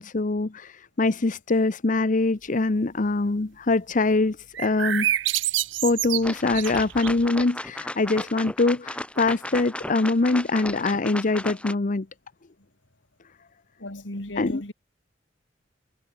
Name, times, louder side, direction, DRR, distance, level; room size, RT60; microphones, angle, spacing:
voice 1, 0.0-5.1 5.8-12.1 14.4-14.6, left 3 dB, 45° left, 0.8 m, -23 dB
sound 1, 4.5-7.3, right 13 dB, 80° right, 0.6 m, -27 dB
sound 2, 6.2-11.8, left 1 dB, 5° left, 1.0 m, -35 dB
voice 2, 13.8-14.7, left 1 dB, 90° left, 4.1 m, -35 dB
head